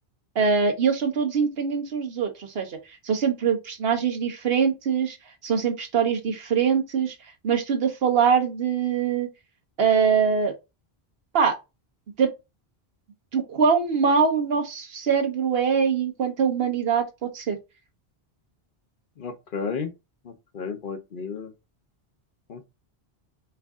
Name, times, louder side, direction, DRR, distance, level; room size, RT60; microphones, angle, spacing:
voice 1, 0.4-2.8 3.0-5.2 5.4-7.2 7.4-9.3 9.8-10.5 11.3-11.5 12.2-12.3 13.3-17.0 17.3-17.6, right 6 dB, 70° right, 1.1 m, -23 dB
voice 2, 19.2-19.9 20.2-21.5 22.5-22.6, left 5 dB, 60° left, 0.9 m, -33 dB
4.6 x 2.5 x 3.5 m
omnidirectional pair, 1.1 m